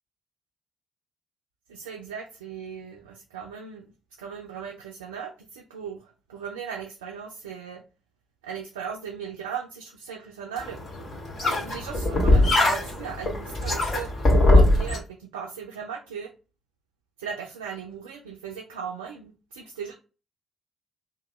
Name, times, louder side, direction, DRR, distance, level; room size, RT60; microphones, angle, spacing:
voice 1, 1.7-3.9 4.2-7.8 8.4-10.8 11.5-16.3 17.2-19.9, right 7 dB, 85° right, 1 dB, 0.3 m, -37 dB
sound 1, 10.6-15.0, left 2 dB, 50° left, 1.3 m, -21 dB
2.9 x 2.1 x 3.1 m, 0.32 s
figure-of-eight pair, 40°, 0 cm